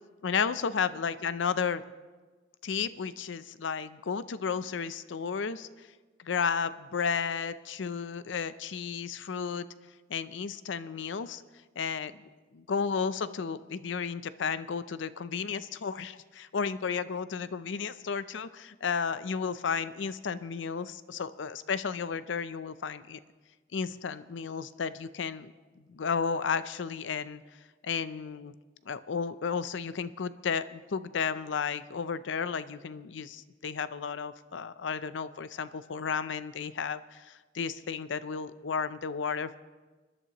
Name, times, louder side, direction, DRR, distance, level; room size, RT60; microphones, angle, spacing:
voice 1, 0.2-1.8 2.6-5.7 6.2-9.7 10.1-11.4 11.8-12.1 12.5-23.2 23.7-25.5 25.9-27.4 27.8-28.5 28.9-39.5, left 6 dB, 75° left, 15 dB, 0.5 m, -33 dB
21.5 x 11.0 x 3.0 m, 1.3 s
head